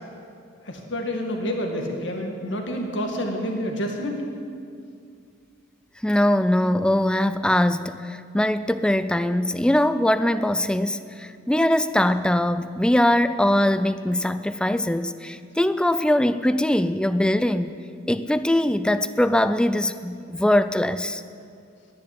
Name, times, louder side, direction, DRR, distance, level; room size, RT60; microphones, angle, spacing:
voice 1, 0.6-4.2, equal, 70° left, 2 dB, 2.1 m, -28 dB
voice 2, 6.0-17.7 18.1-21.2, left 1 dB, 5° left, 12 dB, 0.3 m, -22 dB
11.0 x 10.5 x 9.8 m, 2.3 s
head